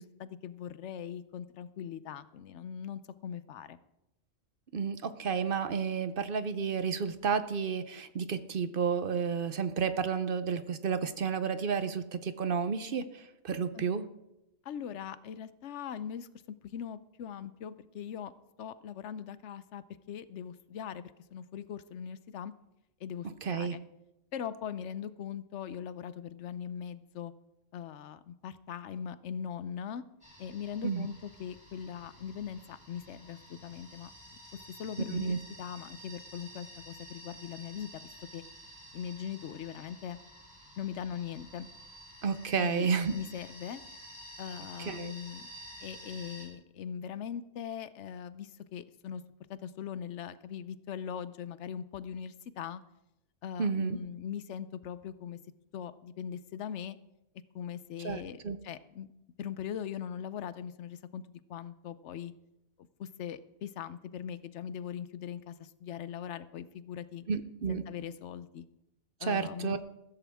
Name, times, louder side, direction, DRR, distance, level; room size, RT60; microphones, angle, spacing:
voice 1, 0.0-3.8 13.7-13.8 14.6-16.3 16.6-18.3 18.6-22.5 23.0-23.8 24.3-27.3 27.7-30.0 30.4-34.1 34.7-38.4 38.9-40.2 40.8-41.7 42.6-43.8 44.4-45.5 45.8-49.2 49.5-52.8 53.4-55.4 55.7-57.0 57.5-59.1 59.4-62.3 63.0-67.2 67.7-68.6 69.2-69.8, left 8 dB, 75° left, 14 dB, 1.0 m, -40 dB
voice 2, 4.7-14.0 23.2-23.8 30.8-31.1 35.1-35.4 42.2-43.1 44.8-45.1 53.6-54.0 58.0-58.6 67.3-67.8 69.2-69.8, right 6 dB, 50° right, 11 dB, 0.8 m, -31 dB
sound 1, 30.2-46.5, equal, 5° right, 3.4 m, -51 dB
15.0 x 13.5 x 3.5 m, 0.89 s
omnidirectional pair, 1.2 m